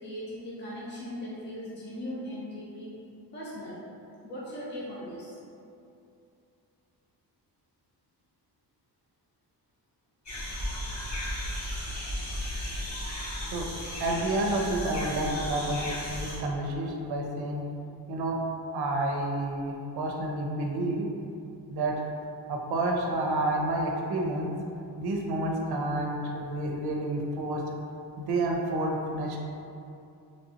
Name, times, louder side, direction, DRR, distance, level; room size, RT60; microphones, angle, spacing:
voice 1, 0.0-2.9 3.3-3.8 4.2-5.4, left 1 dB, 25° left, -8 dB, 0.6 m, -38 dB
sound 1, 10.3-16.4, left 1 dB, 45° left, 1.0 m, -35 dB
voice 2, 14.0-17.7 18.1-18.4 18.7-21.1 21.7-22.0 22.5-24.5 25.0-27.6 28.2-29.4, right 1 dB, 65° right, 0 dB, 0.5 m, -29 dB
3.1 x 2.6 x 2.7 m, 2.6 s
wide cardioid pair, 125°, 41 cm